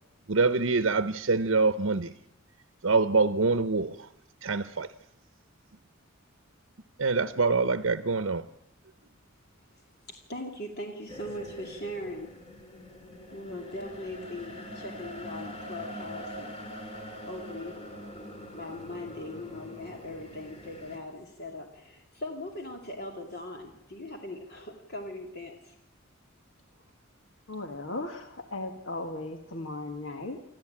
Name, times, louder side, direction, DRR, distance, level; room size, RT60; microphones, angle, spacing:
voice 1, 0.3-2.1 2.8-4.1 4.4-4.9 7.0-8.5, right 4 dB, 70° right, 0.8 m, -25 dB
voice 2, 10.1-12.4 13.3-16.6 17.2-17.8 18.6-25.8, left 1 dB, 55° left, 2.5 m, -40 dB
sound 1, 11.1-21.0, equal, 30° left, 2.5 m, -43 dB
voice 3, 27.5-30.4, left 2 dB, 75° left, 1.7 m, -37 dB
26.5 x 14.5 x 8.7 m
head